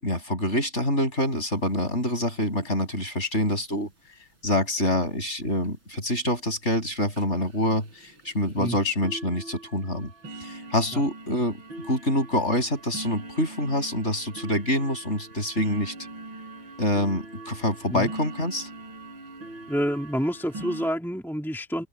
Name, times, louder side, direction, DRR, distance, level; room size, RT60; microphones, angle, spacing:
voice 1, 0.0-3.9 4.4-10.1 10.4-11.6 11.9-15.9 16.8-18.7, left 1 dB, 30° left, 8.0 m, -26 dB
sound 1, 1.2-1.3 1.6-1.7 1.8-2.0 2.4-2.7 3.5-3.6 4.1-4.2 4.6-4.7 5.0-5.1 5.6-5.7 6.1-6.3 6.7-6.8 7.1-20.9, right 2 dB, 70° right, 8.6 m, -42 dB
voice 2, 19.7-21.9, equal, ahead, 3.0 m, -28 dB
open air
omnidirectional pair, 2.2 m